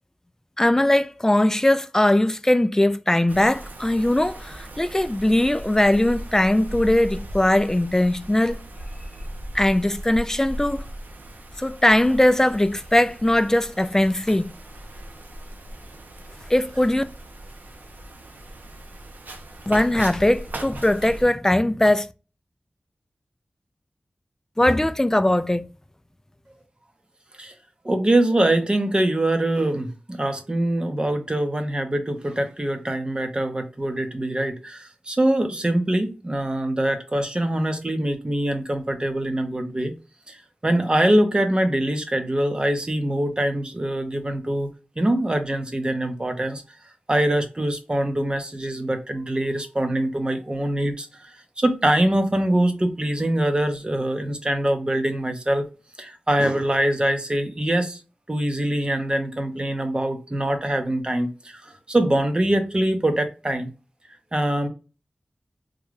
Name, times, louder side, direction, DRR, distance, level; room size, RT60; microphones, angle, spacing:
voice 1, 0.6-8.6 9.5-10.9 11.6-14.5 16.5-17.0 19.7-22.1 24.6-25.7, left 1 dB, 15° left, 0.3 m, -20 dB
Wind, 3.3-21.2, right 1 dB, 80° right, 0.6 m, -38 dB
voice 2, 27.8-39.9 40.3-44.7 45.0-46.6 47.1-55.6 56.0-58.0 58.3-63.7 64.3-64.7, right 1 dB, 30° right, 0.7 m, -23 dB
3.7 x 2.2 x 3.1 m
wide cardioid pair, 65°, 3 cm